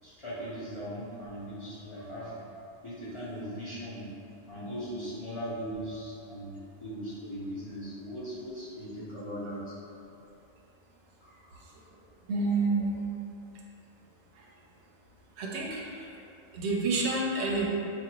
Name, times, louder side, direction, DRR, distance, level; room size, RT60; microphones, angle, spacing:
voice 1, 0.0-2.4 2.8-4.1 4.5-6.5 6.8-9.7 11.2-11.7, equal, 30° left, -11 dB, 0.8 m, -39 dB
voice 2, 12.3-13.0 14.4-14.5 15.4-16.1 16.5-17.7, right 3 dB, 80° right, -2 dB, 0.8 m, -29 dB
4.5 x 2.5 x 2.9 m, 2.6 s
omnidirectional pair, 1.1 m